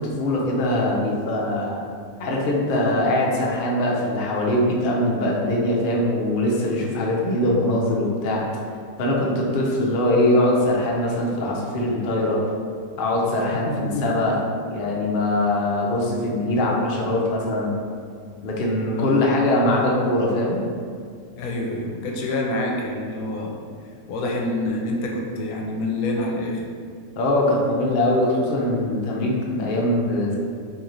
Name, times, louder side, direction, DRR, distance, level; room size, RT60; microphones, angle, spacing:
voice 1, 0.0-1.8 2.2-8.4 9.0-12.4 13.0-14.4 14.7-17.7 18.4-20.6 27.2-30.4, left 1 dB, 55° left, -3 dB, 0.6 m, -22 dB
voice 2, 13.5-14.2 18.9-19.2 21.4-23.6 24.1-26.7, left 1 dB, 75° left, -1 dB, 1.0 m, -27 dB
3.1 x 2.7 x 3.8 m, 2.2 s
omnidirectional pair, 1.5 m